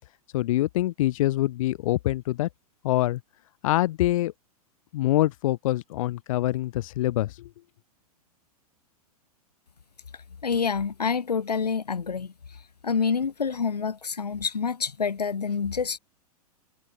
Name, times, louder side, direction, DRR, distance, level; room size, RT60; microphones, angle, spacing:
voice 1, 0.3-2.5 2.8-3.2 3.6-4.3 4.9-7.5, left 15 dB, 55° left, 0.7 m, -25 dB
voice 2, 10.4-12.3 12.8-16.0, left 5 dB, 90° left, 1.0 m, -27 dB
hypercardioid pair, 105°, 20 cm